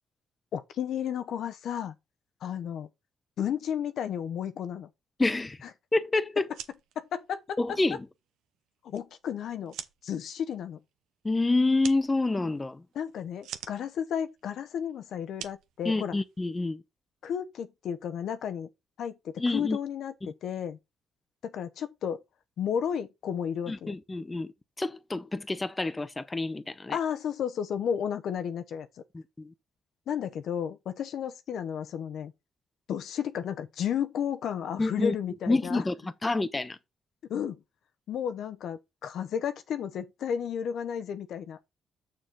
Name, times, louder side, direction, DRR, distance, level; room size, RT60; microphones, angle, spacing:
voice 1, 0.5-1.9 2.4-2.9 3.4-4.9 7.0-7.6 8.8-9.7 10.0-10.8 12.9-16.1 17.2-18.7 19.0-20.8 21.4-22.2 22.6-24.0 26.9-28.9 30.1-32.3 32.9-35.8 37.3-37.6 38.1-41.6, left 8 dB, 70° left, 0.9 m, -33 dB
voice 2, 5.2-5.6 5.9-6.5 7.6-8.1 11.2-12.8 15.8-16.8 19.4-19.8 20.2-20.3 23.7-27.0 29.1-29.5 34.8-35.2 35.5-36.8, left 2 dB, 20° left, 0.8 m, -28 dB
sound 1, 6.4-16.6, right 10 dB, 85° right, 0.8 m, -48 dB
6.8 x 6.5 x 3.8 m
cardioid pair, 90°, 0 cm